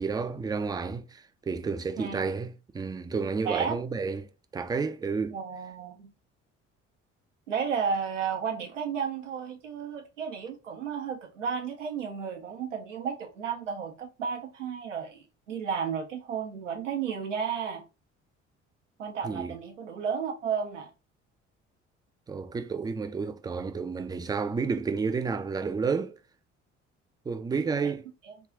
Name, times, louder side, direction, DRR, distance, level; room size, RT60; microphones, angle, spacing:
voice 1, 0.0-5.4 19.2-19.5 22.3-26.2 27.3-28.1, right 5 dB, 10° right, 0.4 m, -31 dB
voice 2, 3.4-3.8 5.3-6.1 7.5-17.8 19.0-20.9 27.8-27.9 28.2-28.4, right 6 dB, 85° right, 0.7 m, -33 dB
3.5 x 2.4 x 3.7 m
figure-of-eight pair, 50°, 36 cm